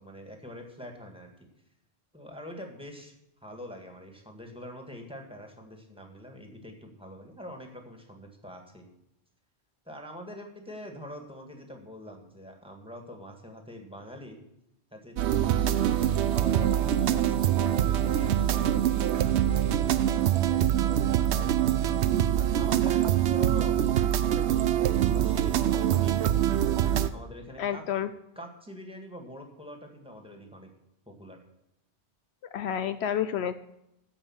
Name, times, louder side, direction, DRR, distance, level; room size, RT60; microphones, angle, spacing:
voice 1, 0.0-1.5 2.1-3.1 3.4-8.9 9.8-14.4 14.9-18.8 19.1-21.8 22.4-23.8 24.2-26.5 27.1-27.9 28.3-30.7 31.1-31.4, left 1 dB, 5° right, 3 dB, 1.8 m, -44 dB
sound 1, 15.2-27.1, right 11 dB, 80° right, 0.9 m, -24 dB
voice 2, 27.6-28.1 32.5-33.5, left 9 dB, 75° left, 12 dB, 0.8 m, -29 dB
14.0 x 5.4 x 7.2 m, 0.83 s
omnidirectional pair, 1.1 m